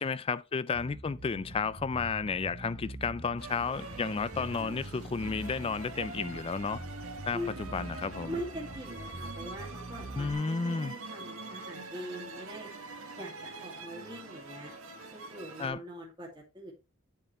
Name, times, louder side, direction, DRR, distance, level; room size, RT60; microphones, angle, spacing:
voice 1, 0.0-6.8 7.3-8.4 10.2-10.9 15.6-15.8, left 5 dB, 25° left, 0.3 m, -32 dB
Bass guitar, 0.7-10.3, right 1 dB, 45° right, 1.0 m, -44 dB
sound 1, 3.4-15.7, right 3 dB, 80° right, 1.7 m, -44 dB
voice 2, 8.3-12.7 13.2-14.7 15.1-16.7, equal, 20° right, 2.3 m, -42 dB
11.0 x 4.7 x 3.1 m
head